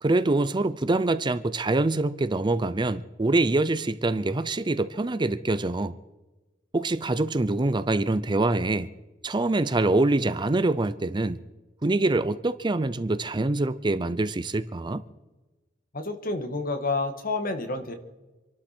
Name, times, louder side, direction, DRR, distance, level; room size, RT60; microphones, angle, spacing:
voice 1, 0.0-6.0 6.7-8.9 9.2-11.4 11.8-15.0, right 2 dB, 25° right, 0.5 m, -25 dB
voice 2, 15.9-17.9, left 3 dB, 50° left, 1.8 m, -29 dB
27.0 x 11.5 x 4.4 m
head